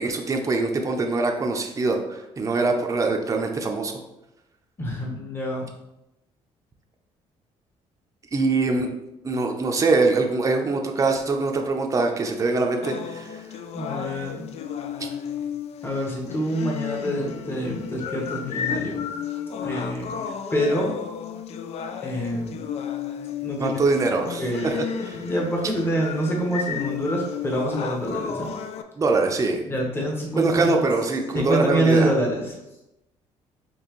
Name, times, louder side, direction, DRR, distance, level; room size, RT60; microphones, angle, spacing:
voice 1, 0.0-3.9 8.3-8.9 9.2-13.4 23.6-25.2 29.0-29.6 30.3-32.1, right 3 dB, 25° right, 3 dB, 0.6 m, -23 dB
voice 2, 4.8-5.7 13.7-14.4 15.8-19.1 19.6-20.9 22.0-22.6 23.4-23.8 24.1-24.7 25.1-28.5 29.7-30.8 31.3-32.6, right 1 dB, 20° left, -1 dB, 1.1 m, -26 dB
sound 1, 12.8-28.8, left 7 dB, 55° left, 0.4 m, -33 dB
4.2 x 2.9 x 3.0 m, 0.91 s
cardioid pair, 90°, 13 cm